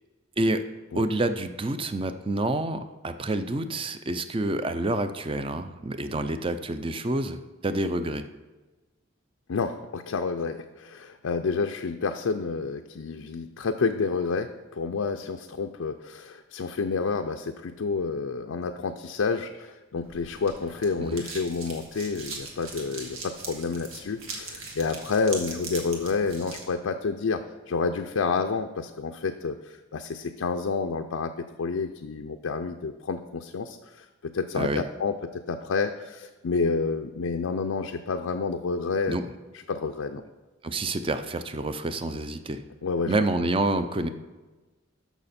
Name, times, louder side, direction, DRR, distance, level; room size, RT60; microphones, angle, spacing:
voice 1, 0.9-8.3 21.0-21.2 34.6-34.8 39.1-39.3 40.6-42.6 43.1-44.1, right 2 dB, 25° right, 10 dB, 0.5 m, -28 dB
voice 2, 9.5-39.2 39.7-40.2 42.8-43.1, left 4 dB, 80° left, 5 dB, 0.5 m, -29 dB
sound 1, 20.0-26.7, right 3 dB, 85° right, 1.9 m, -40 dB
13.5 x 5.9 x 4.2 m, 1.2 s
head